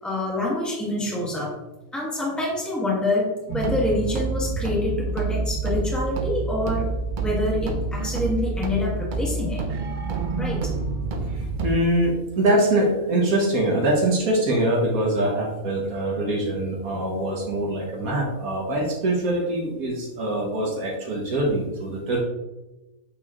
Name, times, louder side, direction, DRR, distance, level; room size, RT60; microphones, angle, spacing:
voice 1, 0.0-1.5 1.9-6.9 7.2-9.6 10.4-10.7, left 1 dB, ahead, -5 dB, 1.4 m, -26 dB
sound 1, 3.5-11.8, right 3 dB, 55° right, 0.5 m, -27 dB
voice 2, 11.3-22.2, right 1 dB, 75° right, -1 dB, 1.7 m, -23 dB
8.3 x 3.2 x 3.6 m, 1.0 s
omnidirectional pair, 1.5 m